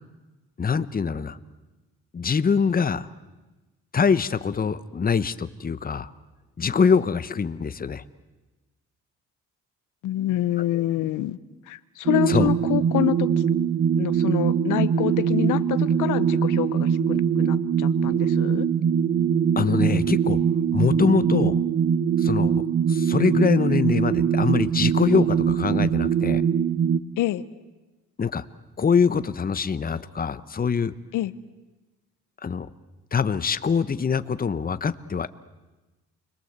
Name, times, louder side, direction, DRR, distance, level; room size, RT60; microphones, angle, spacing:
voice 1, 0.6-1.4 2.1-3.1 3.9-6.1 6.6-8.0 10.7-10.8 12.3-12.5 19.6-20.4 20.7-21.5 22.2-22.6 22.9-26.4 28.2-28.4 28.8-30.9 32.4-32.7 33.1-35.3, left 6 dB, 30° left, 13 dB, 1.0 m, -24 dB
voice 2, 10.0-11.4 11.7-13.3 14.0-18.7 27.2-27.4 31.1-31.3, left 15 dB, 85° left, 15 dB, 0.9 m, -27 dB
sound 1, 12.1-27.0, right 7 dB, 45° right, 1.2 m, -22 dB
29.5 x 22.0 x 8.2 m, 1.2 s
cardioid pair, 90°, 30 cm